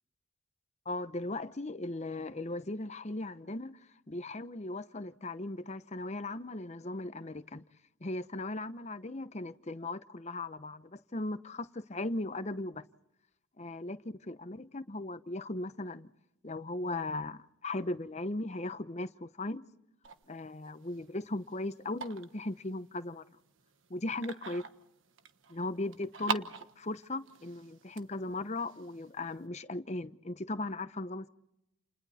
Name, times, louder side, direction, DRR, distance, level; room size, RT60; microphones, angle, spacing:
voice 1, 0.9-3.8 4.1-7.6 8.0-12.8 13.6-16.1 16.4-19.7 20.3-23.2 23.9-24.6 25.5-31.3, left 2 dB, 30° left, 0.8 m, -38 dB
sound 1, 20.0-29.4, right 5 dB, 65° right, 1.3 m, -44 dB
30.0 x 29.5 x 4.2 m
head